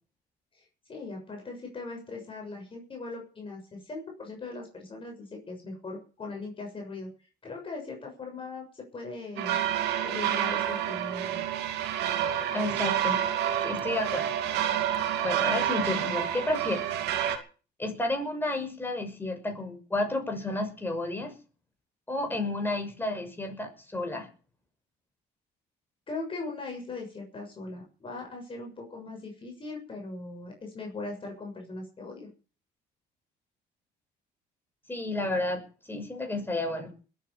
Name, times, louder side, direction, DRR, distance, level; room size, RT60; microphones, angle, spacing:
voice 1, 0.9-7.1 7.4-9.6 10.0-11.4 26.1-32.3, left 3 dB, 30° left, 0 dB, 7.0 m, -39 dB
sound 1, 9.4-17.4, right 10 dB, 85° right, 2.5 m, -29 dB
voice 2, 12.5-13.2 13.6-14.3 15.2-16.8 17.8-21.3 22.1-24.3 34.9-35.6 35.9-36.9, left 2 dB, 10° left, 4 dB, 6.2 m, -31 dB
21.0 x 9.2 x 7.3 m, 0.37 s
cardioid pair, 110°, 17 cm